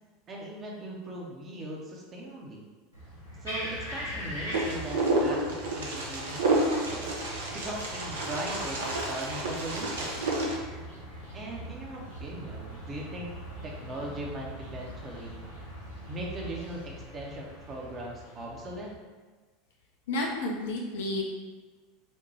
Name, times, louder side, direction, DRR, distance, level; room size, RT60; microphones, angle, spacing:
voice 1, 0.3-2.6 3.4-7.1 7.5-10.2 11.3-13.3 13.6-15.4 16.1-18.9, right 1 dB, 30° right, -2 dB, 0.7 m, -39 dB
sound 1, 2.9-18.9, equal, 90° left, 1.1 m, -42 dB
Wind, 4.5-10.6, right 2 dB, 70° right, 0.6 m, -30 dB
voice 2, 20.1-21.2, left 2 dB, 65° left, -1 dB, 0.6 m, -31 dB
4.3 x 2.1 x 3.1 m, 1.4 s
figure-of-eight pair, 80°, 0 cm